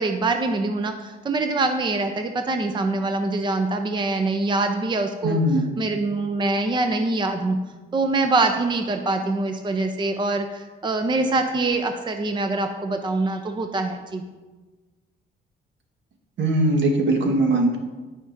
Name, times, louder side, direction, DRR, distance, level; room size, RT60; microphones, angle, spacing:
voice 1, 0.0-5.4 5.8-7.6 7.9-14.2, right 2 dB, 25° right, 6 dB, 0.6 m, -24 dB
voice 2, 5.2-5.9 16.4-17.8, right 1 dB, 65° right, 1 dB, 1.5 m, -21 dB
13.5 x 5.1 x 2.6 m, 1.3 s
cardioid pair, 90°, 20 cm